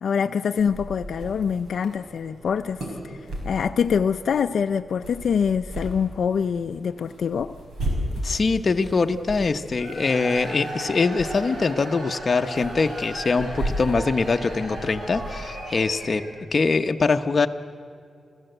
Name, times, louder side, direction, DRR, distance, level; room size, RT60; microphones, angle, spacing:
voice 1, 0.0-7.6, left 7 dB, 75° left, 0.5 m, -25 dB
sound 1, 0.6-15.8, right 1 dB, 85° right, 5.5 m, -36 dB
voice 2, 8.2-16.2 16.5-17.5, left 4 dB, 40° left, 0.9 m, -23 dB
Cheering / Crowd, 9.7-16.5, equal, 55° right, 5.0 m, -36 dB
28.5 x 15.5 x 8.0 m
wide cardioid pair, 120°, 0 cm